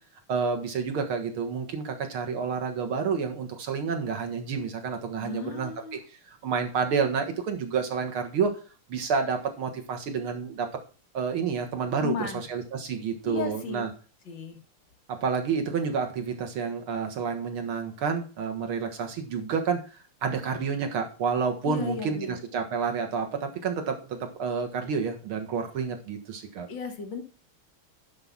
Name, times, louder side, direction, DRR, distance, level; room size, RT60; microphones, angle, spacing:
voice 1, 0.3-5.7 6.3-8.5 8.9-10.7 11.1-13.9 15.1-26.7, right 5 dB, 75° right, 4 dB, 2.3 m, -29 dB
voice 2, 5.2-6.0 12.0-12.5 13.2-13.8 14.3-14.6 21.6-22.4 26.7-27.2, left 6 dB, 60° left, 4 dB, 2.0 m, -34 dB
11.0 x 4.9 x 5.6 m, 0.36 s
omnidirectional pair, 2.4 m